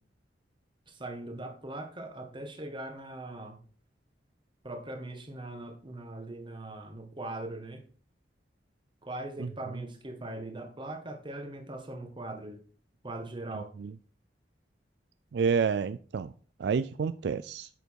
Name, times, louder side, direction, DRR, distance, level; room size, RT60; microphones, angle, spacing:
voice 1, 1.0-3.5 4.6-7.8 9.0-12.6 13.0-13.7, right 2 dB, 30° right, 1.5 m, -40 dB
voice 2, 9.4-9.8 13.5-14.0 15.3-16.3 16.6-17.7, right 6 dB, 65° right, 0.3 m, -30 dB
8.0 x 6.7 x 4.7 m
head